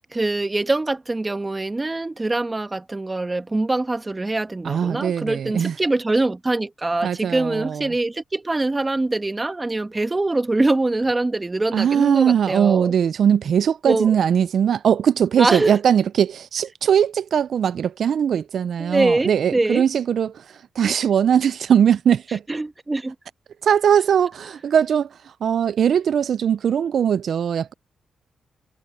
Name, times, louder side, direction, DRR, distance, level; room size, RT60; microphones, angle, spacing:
voice 1, 0.1-12.9 13.8-14.1 15.4-15.7 18.8-19.9 22.5-23.1, right 2 dB, 20° right, 1.3 m, -23 dB
voice 2, 4.6-5.8 7.0-7.9 11.7-22.4 23.6-27.7, right 8 dB, 70° right, 0.3 m, -20 dB
cardioid pair, 80°, 0 cm